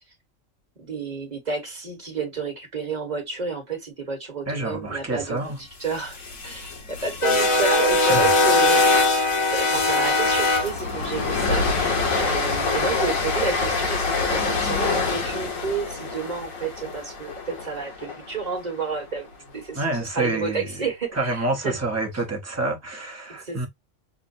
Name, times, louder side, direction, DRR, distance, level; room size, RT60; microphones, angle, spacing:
voice 1, 0.8-6.2 6.4-8.8 9.5-11.7 12.2-19.3 19.5-21.8 23.3-23.7, right 4 dB, 35° right, 1.3 m, -30 dB
voice 2, 4.5-5.6 8.1-8.3 19.7-20.8 21.1-23.7, right 2 dB, 15° right, 0.8 m, -28 dB
sound 1, 6.0-18.1, left 3 dB, 85° left, 1.7 m, -22 dB
6.0 x 2.2 x 2.5 m
omnidirectional pair, 1.4 m